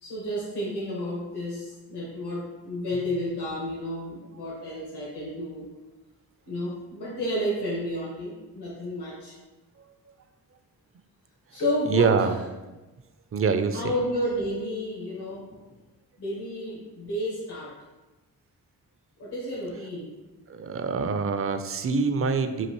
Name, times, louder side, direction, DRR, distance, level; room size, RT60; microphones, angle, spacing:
voice 1, 0.0-5.7 6.5-9.3 11.5-12.1 13.7-15.4 16.2-17.7 19.2-20.2, equal, 75° left, -5 dB, 1.4 m, -31 dB
voice 2, 11.9-12.4 12.6-12.8 13.3-13.9 20.5-22.7, right 5 dB, 35° right, 8 dB, 0.5 m, -25 dB
6.6 x 2.5 x 3.0 m, 1.1 s
supercardioid pair, 50°, 39 cm